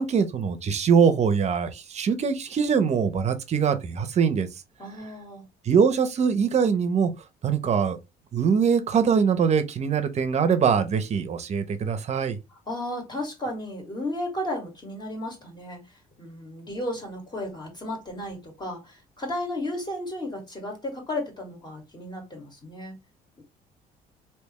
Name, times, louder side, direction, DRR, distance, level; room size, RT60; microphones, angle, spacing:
voice 1, 0.0-4.5 5.7-7.1 7.4-8.0 8.3-12.4, right 6 dB, 40° right, 0.8 m, -23 dB
voice 2, 4.8-5.4 12.7-23.0 23.4-23.5, left 1 dB, 25° left, 2.0 m, -34 dB
3.4 x 3.0 x 3.0 m
cardioid pair, 110°, 17 cm